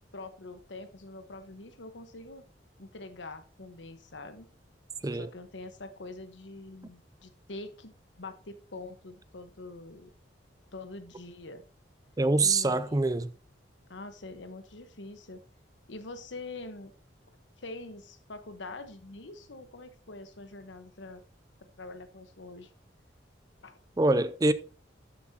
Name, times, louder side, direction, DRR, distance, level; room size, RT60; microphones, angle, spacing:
voice 1, 0.1-2.4 2.8-4.5 5.1-10.1 10.7-11.6 12.4-13.0 13.9-15.4 15.9-16.9 17.6-21.2 21.6-22.7 23.6-23.8, left 2 dB, 80° left, 1.1 m, -44 dB
voice 2, 12.2-13.3 24.0-24.5, right 2 dB, 20° right, 0.4 m, -25 dB
12.5 x 7.2 x 2.8 m
head